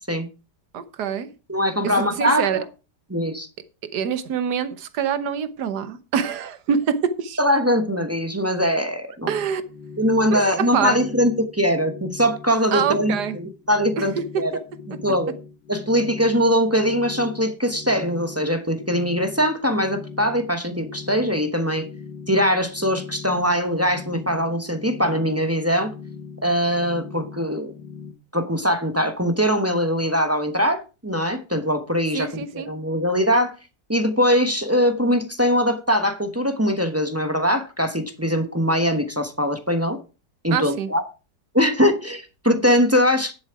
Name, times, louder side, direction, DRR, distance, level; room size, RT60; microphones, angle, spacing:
voice 1, 0.7-1.3 1.8-2.6 3.8-7.4 9.3-9.6 10.3-11.0 12.7-13.4 14.0-14.1 14.3-14.4 32.1-32.7 40.5-40.9, right 7 dB, 70° right, 1.5 m, -25 dB
voice 2, 1.5-2.6 3.1-3.5 7.4-9.3 10.0-14.6 14.9-15.3 15.7-21.9 22.3-25.9 26.4-27.7 28.3-32.3 32.5-33.5 33.9-40.0 40.4-41.0 41.5-43.3, equal, 10° right, 0.9 m, -22 dB
sound 1, 9.2-28.1, left 5 dB, 90° left, 1.8 m, -40 dB
10.5 x 7.3 x 4.8 m
omnidirectional pair, 1.9 m